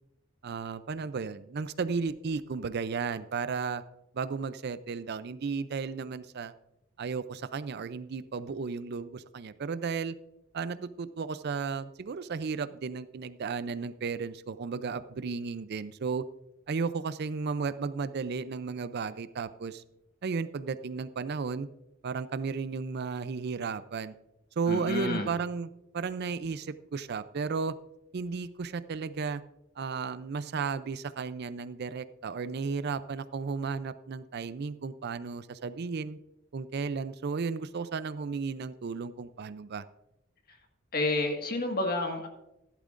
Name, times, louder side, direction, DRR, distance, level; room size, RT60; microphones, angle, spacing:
voice 1, 0.4-3.8 4.1-6.5 7.0-10.2 10.5-16.2 16.7-19.8 20.2-21.7 22.0-24.1 24.6-27.7 28.1-29.4 29.8-36.2 36.5-39.8, right 5 dB, 55° right, 14 dB, 0.4 m, -34 dB
voice 2, 24.7-25.3 40.9-42.3, left 2 dB, 50° left, 4 dB, 1.7 m, -30 dB
15.0 x 11.5 x 2.5 m, 0.87 s
head